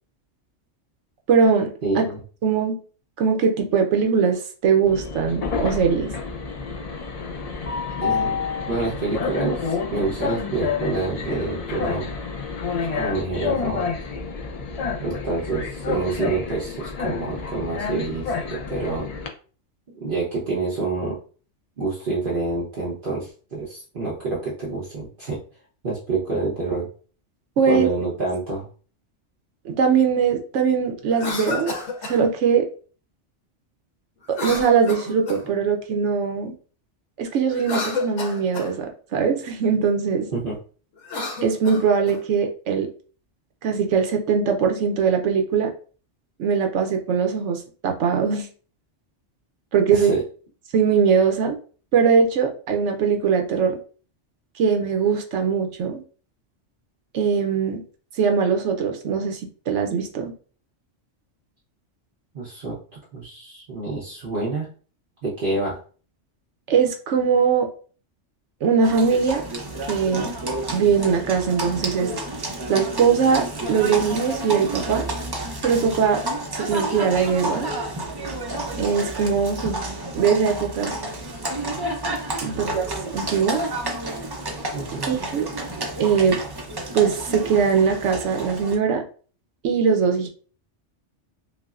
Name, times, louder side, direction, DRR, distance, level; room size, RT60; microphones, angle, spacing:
voice 1, 1.3-2.0 2.4-2.8 3.2-6.1 27.6-27.9 29.6-31.7 32.1-32.7 34.4-36.5 37.2-40.3 41.4-42.9 43.6-45.7 46.4-48.5 49.7-50.1 50.7-51.6 51.9-53.8 54.6-56.0 57.1-57.8 58.2-59.4 59.7-60.3 66.7-67.7 68.6-69.4 69.9-70.3 70.7-72.1 72.7-75.1 75.6-76.2 76.7-77.7 78.8-79.8 80.1-81.0 82.4-82.9 83.1-83.6 85.0-85.5 86.0-86.4 86.9-89.0 89.6-90.3, right 6 dB, 80° right, 4 dB, 1.0 m, -21 dB
voice 2, 1.8-2.2 8.0-8.4 8.7-12.1 12.9-13.8 15.0-19.1 19.9-21.1 21.8-25.4 25.8-26.9 27.7-28.7 40.3-40.6 49.9-50.2 62.3-62.8 63.1-64.7 65.2-65.8 82.4-82.9 84.7-85.2, right 3 dB, 50° right, -7 dB, 1.0 m, -27 dB
Train, 4.9-19.3, left 5 dB, 50° left, 0.4 m, -29 dB
Cough, 31.1-32.2 34.3-35.6 37.5-38.7 41.0-42.2, left 3 dB, 75° left, 1.2 m, -30 dB
Livestock farm animals working animals, 68.8-88.7, right 1 dB, 30° right, 0.4 m, -30 dB
5.4 x 2.0 x 2.4 m, 0.40 s
omnidirectional pair, 1.2 m